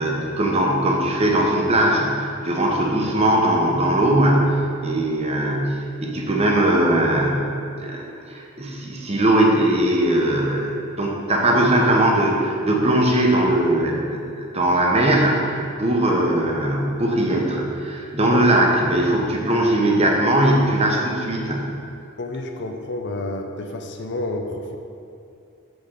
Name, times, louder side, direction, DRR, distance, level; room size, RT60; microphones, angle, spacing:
voice 1, 0.0-8.0 8.3-21.7, right 1 dB, 30° right, -1 dB, 1.0 m, -20 dB
voice 2, 22.2-24.8, left 2 dB, 55° left, 4 dB, 0.7 m, -30 dB
6.1 x 5.2 x 6.5 m, 2.6 s
head